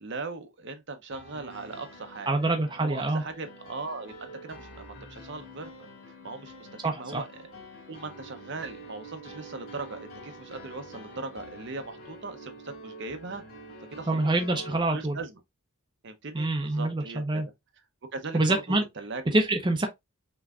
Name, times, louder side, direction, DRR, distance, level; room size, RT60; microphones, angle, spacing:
voice 1, 0.0-2.3 2.8-5.7 6.2-7.4 7.9-13.4 13.9-14.6 14.9-15.4 16.0-17.4 18.1-19.4, right 3 dB, 55° right, 0.8 m, -39 dB
Piano, 1.1-14.8, right 1 dB, 40° left, 2.8 m, -47 dB
voice 2, 2.3-3.2 6.8-7.2 14.1-15.2 16.3-17.5 18.3-18.8 19.3-19.9, right 2 dB, 20° right, 0.6 m, -26 dB
5.8 x 3.1 x 2.5 m
head